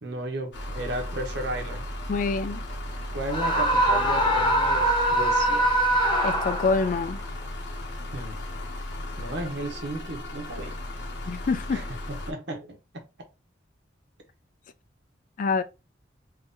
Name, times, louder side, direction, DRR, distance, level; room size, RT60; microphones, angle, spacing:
voice 1, 0.0-1.9 3.1-5.7 8.1-8.4 9.2-10.8 11.7-13.1, right 1 dB, 65° right, 0.9 m, -34 dB
sound 1, 0.5-12.3, left 1 dB, 70° left, 0.8 m, -35 dB
voice 2, 2.1-2.6 6.2-7.2 11.3-11.8 15.4-15.6, left 4 dB, 45° left, 0.3 m, -26 dB
Screaming, 3.3-7.0, right 1 dB, 25° left, 0.8 m, -23 dB
3.0 x 2.7 x 3.6 m
head